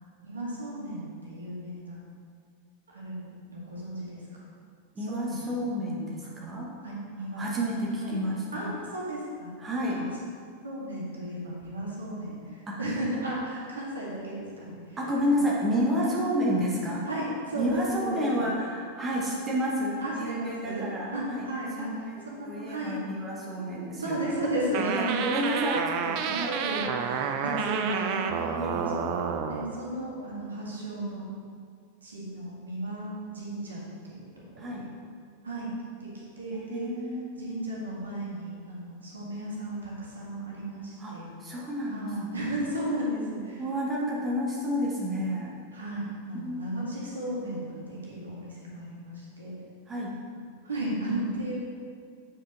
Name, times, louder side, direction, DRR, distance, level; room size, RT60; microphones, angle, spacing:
voice 1, 0.2-2.0 2.9-4.4 5.0-5.5 6.8-7.5 8.0-8.2 8.5-10.0 10.6-15.0 15.3-15.4 16.0-16.2 17.0-18.5 20.0-23.0 24.0-25.3 26.2-28.9 29.5-31.3 32.0-34.3 34.6-34.9 35.4-35.7 36.0-36.1 36.4-36.9 37.3-41.3 41.9-43.6 43.9-44.0 45.7-49.5 50.6-51.6, right 1 dB, 70° right, -5 dB, 1.8 m, -34 dB
voice 2, 4.9-6.7 7.4-8.7 9.6-10.1 12.7-12.8 15.0-17.1 17.5-21.5 22.4-24.3 25.2-26.6 27.3-27.6 28.5-29.0 34.6-34.9 36.5-37.6 41.0-41.1 41.4-42.4 43.6-45.5 46.3-46.6 49.9-50.2, equal, 20° right, -4 dB, 1.2 m, -30 dB
sound 1, 24.7-29.7, right 7 dB, 40° right, 0.5 m, -30 dB
8.5 x 5.0 x 3.8 m, 2.2 s
figure-of-eight pair, 90°, 0 cm